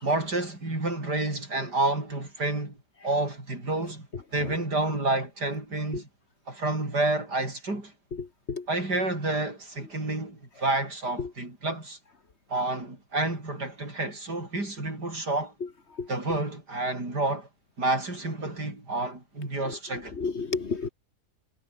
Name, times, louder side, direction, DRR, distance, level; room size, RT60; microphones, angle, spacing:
voice 1, 0.0-2.8 3.0-4.1 4.3-6.1 6.5-7.9 8.7-12.0 12.5-15.5 16.1-17.5 17.8-20.2, right 2 dB, 85° right, 7.8 m, -29 dB
voice 2, 8.1-8.7 11.2-11.3 16.0-16.1 19.7-19.8 20.1-20.9, left 4 dB, 45° left, 1.7 m, -32 dB
omnidirectional pair, 1.7 m